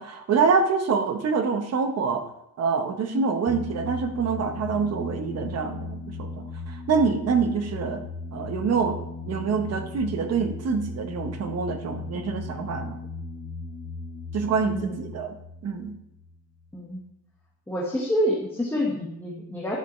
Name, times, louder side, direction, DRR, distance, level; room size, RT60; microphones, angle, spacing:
voice 1, 0.0-2.3 2.6-8.0 8.3-9.0 9.2-13.0 14.3-15.3 15.6-15.9, right 5 dB, 45° right, 7 dB, 1.0 m, -26 dB
sound 1, 3.5-16.7, left 3 dB, 25° left, 1.6 m, -37 dB
voice 2, 14.6-15.1 16.7-17.0 17.7-19.8, equal, 5° left, -4 dB, 1.4 m, -28 dB
10.5 x 6.8 x 3.1 m, 0.82 s
cardioid pair, 150°, 35 cm